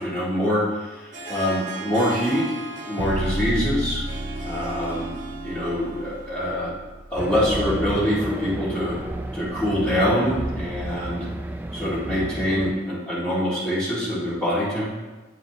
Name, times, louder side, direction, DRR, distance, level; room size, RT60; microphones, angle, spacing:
voice 1, 0.0-2.5 2.9-4.0 4.4-5.1 5.4-6.7 7.1-9.0 9.3-11.3 11.7-14.9, equal, 15° left, -15 dB, 2.3 m, -24 dB
Harp, 1.1-6.6, right 2 dB, 45° right, 1.4 m, -37 dB
sound 1, 3.0-7.1, right 1 dB, 85° right, 0.6 m, -31 dB
Race car auto racing, 7.2-12.7, right 1 dB, 10° right, 0.3 m, -31 dB
10.5 x 4.9 x 3.0 m, 1.2 s
head